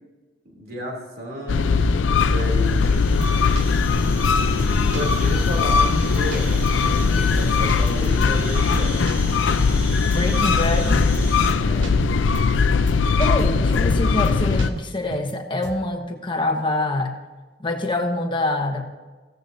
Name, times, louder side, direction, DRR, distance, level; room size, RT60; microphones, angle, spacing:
voice 1, 0.4-3.0 4.4-9.1 11.6-12.0, left 1 dB, 55° right, 0 dB, 2.8 m, -33 dB
sound 1, 1.5-14.7, left 4 dB, 85° left, 0.5 m, -20 dB
sound 2, 2.1-11.5, equal, 10° right, 3.8 m, -35 dB
sound 3, 3.2-4.3 4.6-5.2 5.5-5.6 6.0-7.1 7.3-9.8 10.1-10.7 11.0-11.2 11.5-12.6 12.9-13.4 13.7-15.3 15.6-15.9, right 2 dB, 75° right, 1.0 m, -36 dB
voice 2, 10.1-11.0 13.2-17.1 17.6-18.8, left 2 dB, 25° left, 3 dB, 1.2 m, -25 dB
15.5 x 14.0 x 2.7 m, 1.3 s
head